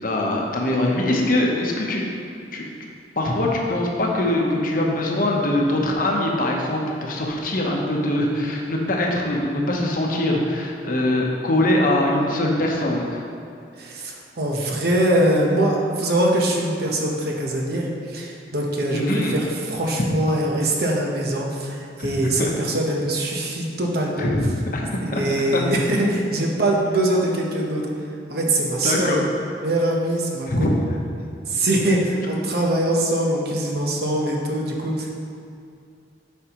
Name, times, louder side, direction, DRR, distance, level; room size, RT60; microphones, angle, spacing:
voice 1, 0.0-2.1 2.5-2.6 3.2-13.2 18.9-19.3 22.0-22.1 22.4-22.5 24.2-24.4 24.7-25.2 25.5-25.6 28.8-29.2 30.5-30.7, left 1 dB, 50° left, -1 dB, 0.9 m, -22 dB
voice 2, 13.8-24.3 25.0-27.9 28.3-29.1 29.6-30.7 31.5-35.1, right 1 dB, 60° right, -1 dB, 1.0 m, -23 dB
8.4 x 5.5 x 3.0 m, 2.5 s
head